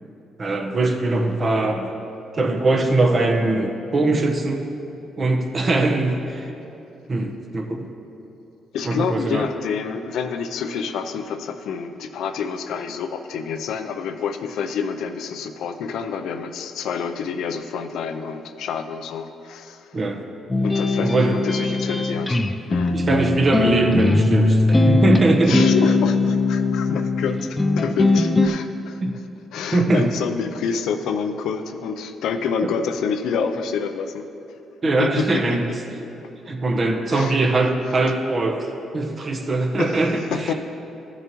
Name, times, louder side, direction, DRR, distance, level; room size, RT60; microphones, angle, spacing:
voice 1, 0.4-1.9 2.3-4.7 5.2-6.5 7.1-7.9 8.9-9.5 19.9-20.2 21.0-21.4 22.9-25.6 29.0-29.1 29.7-30.0 32.6-32.7 34.8-35.7 36.5-38.7 38.9-40.5, right 2 dB, 40° right, 3 dB, 1.0 m, -21 dB
voice 2, 8.7-20.0 20.6-22.4 22.7-23.0 25.5-29.0 29.5-34.3 35.0-35.6 37.1-37.4 39.8-40.0 40.3-40.5, left 6 dB, 80° left, 7 dB, 0.5 m, -28 dB
sound 1, 20.5-28.5, left 2 dB, 15° left, 0.5 m, -20 dB
15.0 x 6.7 x 3.1 m, 2.9 s
cardioid pair, 90°, 0 cm